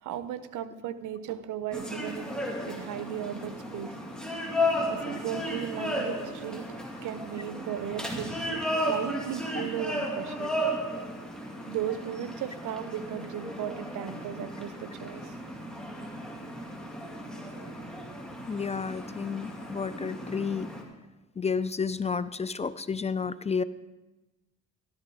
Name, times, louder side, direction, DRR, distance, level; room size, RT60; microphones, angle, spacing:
voice 1, 0.0-3.9 4.8-6.7 7.0-10.5 11.7-15.4, right 10 dB, 80° right, 13 dB, 0.8 m, -36 dB
sound 1, 1.7-20.8, equal, 5° left, 2.2 m, -34 dB
voice 2, 18.5-20.7 21.4-23.6, left 5 dB, 20° left, 15 dB, 0.4 m, -31 dB
13.5 x 13.0 x 3.8 m, 1.1 s
cardioid pair, 90°, 30 cm